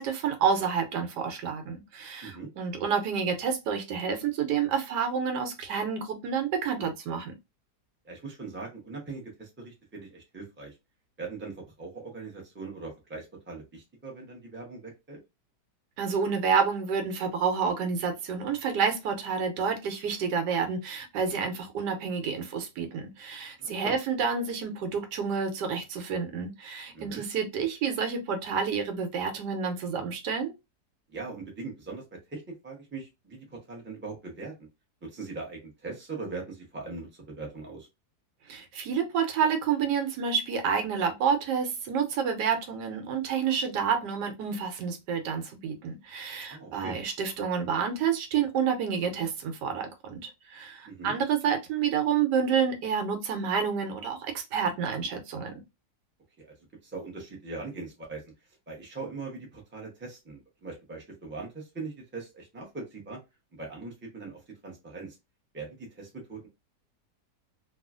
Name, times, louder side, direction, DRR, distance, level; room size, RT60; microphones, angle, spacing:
voice 1, 0.0-7.3 16.0-30.5 38.5-55.6, right 6 dB, 85° right, 1.3 m, -29 dB
voice 2, 8.0-10.8 11.2-15.2 23.6-24.0 26.9-27.2 31.1-34.5 35.0-37.9 46.5-47.0 50.8-51.1 56.4-56.5 56.8-58.2 58.7-63.2 63.5-65.2 65.5-66.5, right 3 dB, 10° right, 0.5 m, -41 dB
3.0 x 2.3 x 2.4 m
omnidirectional pair, 1.8 m